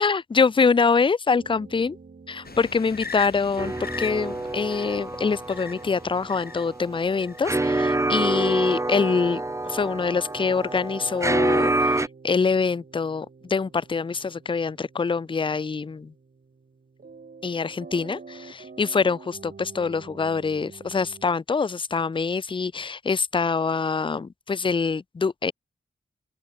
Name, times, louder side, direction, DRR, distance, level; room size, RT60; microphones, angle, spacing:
voice 1, 0.0-2.0 2.3-16.1 17.4-25.5, left 5 dB, 25° left, 0.5 m, -25 dB
sound 1, 1.4-21.3, right 4 dB, 55° right, 6.3 m, -49 dB
sound 2, 2.4-6.7 7.2-7.5, left 4 dB, 55° left, 4.9 m, -40 dB
sound 3, 3.6-12.1, right 2 dB, 15° right, 0.8 m, -27 dB
open air
wide cardioid pair, 85°, 19 cm